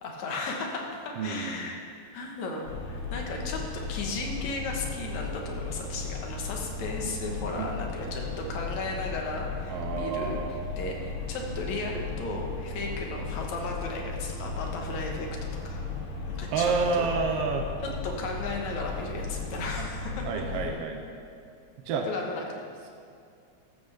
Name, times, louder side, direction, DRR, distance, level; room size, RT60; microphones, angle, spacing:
voice 1, 0.0-1.8 2.1-15.3 15.6-15.9 16.2-17.1 17.8-20.8 22.0-22.5, left 3 dB, 75° left, 1 dB, 2.7 m, -35 dB
voice 2, 1.2-1.7 7.6-7.7 9.7-10.6 16.5-17.7 19.8-19.9 20.2-21.0 21.9-22.1, right 4 dB, 70° right, 3 dB, 1.6 m, -29 dB
sound 1, 2.6-20.7, left 3 dB, 90° left, 3.2 m, -36 dB
14.0 x 13.5 x 3.6 m, 2.5 s
omnidirectional pair, 3.4 m